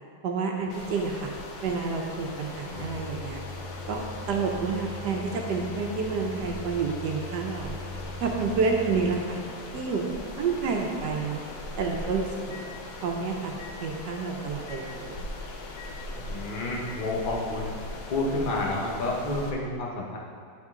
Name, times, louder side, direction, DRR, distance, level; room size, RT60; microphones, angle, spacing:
voice 1, 0.2-1.3 1.6-3.4 3.9-7.7 8.2-9.4 9.7-10.1 10.4-11.4 11.8-12.6 13.0-13.5 13.8-15.2, right 5 dB, 70° right, 1 dB, 1.1 m, -29 dB
Microwave oven, 0.6-13.2 13.6-13.8 14.7-14.8 15.8-15.9 16.9-17.0, left 2 dB, 80° left, 1.5 m, -43 dB
sound 1, 0.7-19.5, left 2 dB, 65° left, 1.1 m, -40 dB
voice 2, 16.1-17.7 18.1-20.2, left 2 dB, 35° left, -3 dB, 0.9 m, -30 dB
9.8 x 4.4 x 3.6 m, 2.3 s
omnidirectional pair, 2.1 m